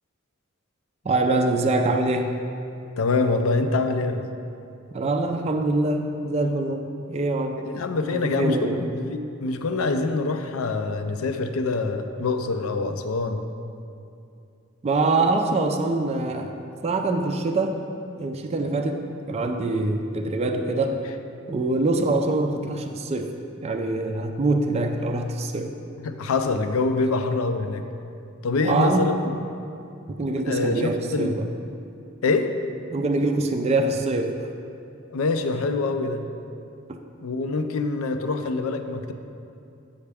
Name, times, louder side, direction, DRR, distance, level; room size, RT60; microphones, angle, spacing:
voice 1, 1.0-2.4 4.9-7.7 8.2-8.8 14.8-16.6 16.8-17.8 18.2-21.1 21.5-23.3 23.6-25.7 28.6-29.1 30.1-31.5 32.9-34.3 36.9-37.0, right 2 dB, 30° right, 4 dB, 0.4 m, -24 dB
voice 2, 3.0-4.2 7.6-13.4 26.0-27.8 28.4-29.3 30.3-31.3 32.2-32.5 35.1-36.2 37.2-39.1, left 3 dB, 75° left, 7 dB, 0.5 m, -25 dB
8.3 x 5.6 x 3.4 m, 2.6 s
head